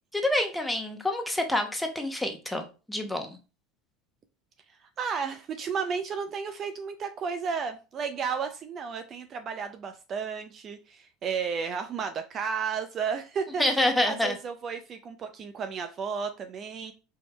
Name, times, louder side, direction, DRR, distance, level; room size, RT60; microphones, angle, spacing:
voice 1, 0.1-3.4 13.6-14.4, left 1 dB, 5° left, 4 dB, 1.0 m, -27 dB
voice 2, 5.0-13.6 14.1-16.9, right 6 dB, 40° right, 8 dB, 0.5 m, -33 dB
4.6 x 3.1 x 3.1 m, 0.32 s
supercardioid pair, 95°, 0 cm